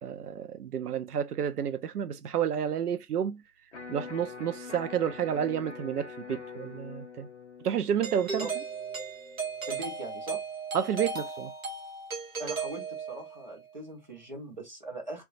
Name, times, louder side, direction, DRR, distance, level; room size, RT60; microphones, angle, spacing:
voice 1, 0.0-3.4 3.9-7.3 7.6-8.5 10.7-11.5, right 8 dB, 85° right, 0.5 m, -30 dB
Electric guitar, 3.7-9.8, left 5 dB, 55° left, 0.6 m, -45 dB
Doorbell, 8.0-13.4, right 4 dB, 65° right, 1.0 m, -36 dB
voice 2, 9.7-10.4 12.4-15.2, right 2 dB, 30° right, 0.8 m, -40 dB
2.2 x 2.0 x 3.8 m
hypercardioid pair, 175°, 45 cm